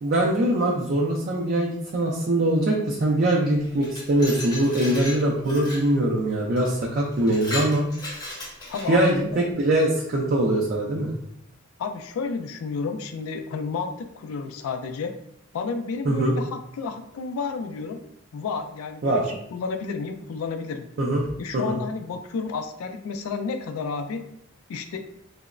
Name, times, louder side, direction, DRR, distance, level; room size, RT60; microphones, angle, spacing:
voice 1, 0.0-7.8 8.9-11.1 16.1-16.3 19.0-19.3 21.0-21.2 21.7-21.8, right 1 dB, 45° right, -3 dB, 0.3 m, -22 dB
Glass, 3.6-5.9 6.6-6.7 7.1-9.1, left 1 dB, 20° left, 0.6 m, -36 dB
voice 2, 8.7-9.4 11.8-15.1 15.5-18.0 18.3-20.9 21.4-24.2 24.7-25.0, left 4 dB, 85° left, 7 dB, 0.3 m, -31 dB
2.9 x 2.0 x 2.3 m, 0.73 s
head